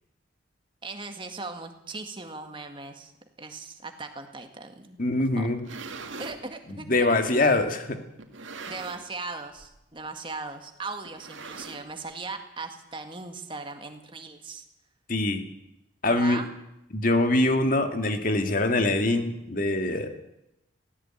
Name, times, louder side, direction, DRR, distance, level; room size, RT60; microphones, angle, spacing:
voice 1, 0.8-3.1 3.4-5.0 5.4-5.5 6.2-7.2 8.7-14.6 16.1-16.5, right 3 dB, 25° right, 6 dB, 2.0 m, -38 dB
voice 2, 5.0-5.6 6.7-8.0 15.1-15.5 16.0-16.4 16.9-20.1, left 2 dB, 45° left, 6 dB, 2.1 m, -24 dB
sound 1, 5.4-6.4 7.2-7.3 8.2-9.2 9.5-9.8 10.1-10.2 11.0-12.1, right 4 dB, 80° right, 2.2 m, -41 dB
17.0 x 16.5 x 9.0 m, 0.87 s
head